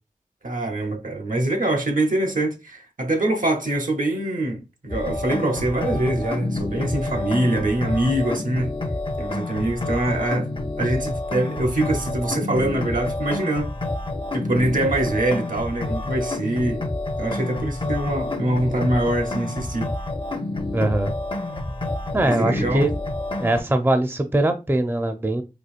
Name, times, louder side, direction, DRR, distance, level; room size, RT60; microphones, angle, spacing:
voice 1, 0.4-8.8 9.2-10.5 10.8-13.7 14.3-16.8 17.2-19.9 22.2-22.9, right 1 dB, 65° right, 0.8 m, -24 dB
sound 1, 4.9-23.6, left 2 dB, 35° left, 0.6 m, -28 dB
voice 2, 20.7-21.1 22.1-22.9 23.4-25.4, right 1 dB, 15° right, 0.5 m, -21 dB
4.4 x 2.6 x 2.4 m
wide cardioid pair, 45°, 15 cm